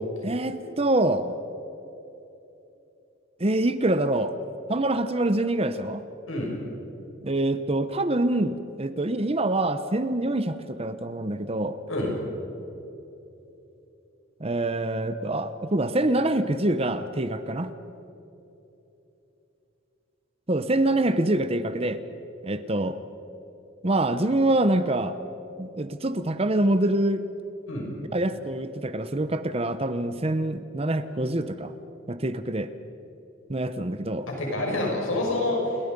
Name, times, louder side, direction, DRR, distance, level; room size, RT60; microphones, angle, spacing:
voice 1, 0.2-1.3 3.4-4.3 4.7-6.0 7.2-11.8 14.4-17.7 20.5-22.0 22.4-23.0 23.8-25.1 25.6-27.3 28.1-31.7 32.1-32.7 33.5-34.3, right 1 dB, 30° right, 11 dB, 0.8 m, -25 dB
voice 2, 34.3-35.6, left 2 dB, 85° left, -1 dB, 6.1 m, -27 dB
29.0 x 22.0 x 5.4 m, 3.0 s
head